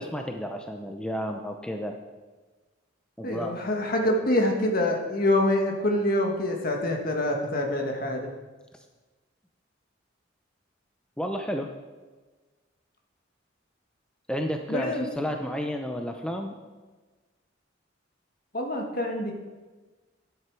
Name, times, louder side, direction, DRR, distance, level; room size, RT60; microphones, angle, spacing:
voice 1, 0.0-1.9 3.2-3.5 11.2-11.7 14.3-16.5, equal, 5° left, 4 dB, 0.6 m, -31 dB
voice 2, 3.2-8.3 14.7-15.0 18.5-19.3, left 1 dB, 45° left, 2 dB, 1.6 m, -26 dB
10.5 x 9.3 x 4.7 m, 1.3 s
head